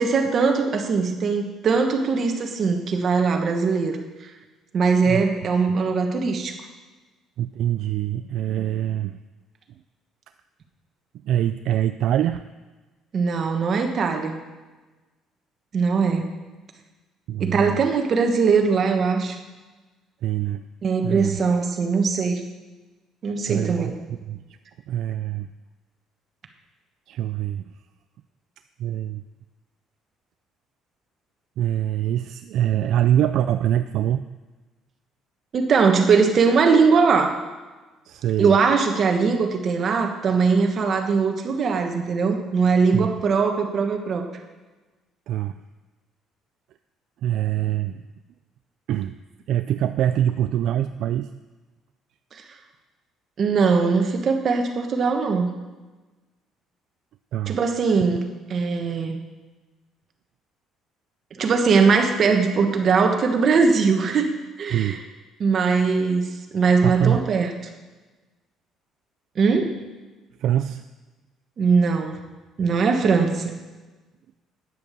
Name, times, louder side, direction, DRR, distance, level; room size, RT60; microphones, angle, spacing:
voice 1, 0.0-4.3 4.7-6.6 13.1-14.4 15.7-16.3 17.4-19.4 20.8-22.4 23.2-23.9 35.5-37.4 38.4-44.3 53.4-55.5 57.5-59.2 61.3-64.3 64.6-65.0 65.4-66.2 66.5-67.5 69.4-69.7 71.6-72.2 72.6-73.6, right 5 dB, 40° right, 4 dB, 1.3 m, -21 dB
voice 2, 7.4-9.2 11.2-12.4 17.3-17.8 20.2-20.6 21.0-21.4 23.5-24.4 24.9-25.5 27.1-27.6 28.8-29.2 31.6-34.3 38.0-38.6 42.9-43.1 45.3-45.6 47.2-48.0 48.9-49.1 49.5-51.3 57.3-57.6 64.7-65.0 66.8-67.2 70.4-70.9, right 11 dB, 65° right, 10 dB, 0.3 m, -24 dB
9.4 x 8.2 x 6.7 m, 1.2 s
cardioid pair, 140°, 0 cm